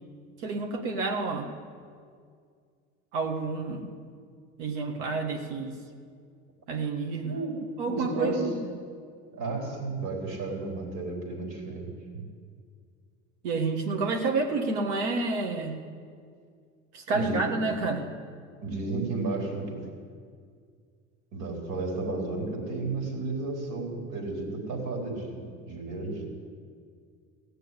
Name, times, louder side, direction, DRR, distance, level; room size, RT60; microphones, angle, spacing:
voice 1, 0.4-1.5 3.1-3.8 4.6-5.7 6.7-7.3 7.8-8.5 13.4-15.8 16.9-18.0, right 3 dB, 80° right, 2 dB, 1.7 m, -29 dB
voice 2, 7.2-7.6 7.9-8.5 9.3-12.3 17.1-17.5 18.6-19.8 21.3-26.2, right 3 dB, 60° right, 0 dB, 4.5 m, -33 dB
16.5 x 6.6 x 9.6 m, 2.1 s
hypercardioid pair, 75°, 36 cm